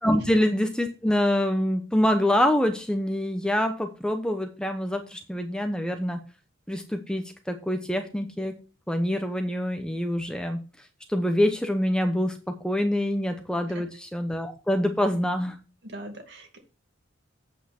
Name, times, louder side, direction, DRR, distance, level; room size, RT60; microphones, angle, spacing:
voice 1, 0.0-6.2 6.7-8.6 8.9-10.6 11.1-15.6, left 1 dB, 5° left, 6 dB, 0.9 m, -25 dB
voice 2, 15.8-16.6, right 1 dB, 55° right, 3 dB, 2.5 m, -40 dB
8.4 x 8.0 x 4.4 m, 0.33 s
head